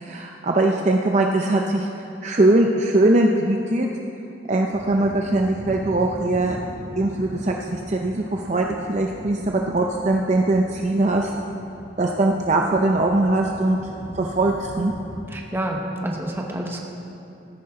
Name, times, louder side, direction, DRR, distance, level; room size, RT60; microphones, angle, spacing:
voice 1, 0.0-3.9 4.5-6.6 7.0-11.3 12.0-13.8 14.1-14.9, right 2 dB, 35° right, 1 dB, 0.5 m, -21 dB
sound 1, 4.7-15.2, equal, 80° right, 2.9 m, -40 dB
voice 2, 15.3-16.8, right 1 dB, 10° right, 0 dB, 1.1 m, -28 dB
17.0 x 10.0 x 3.8 m, 2.8 s
head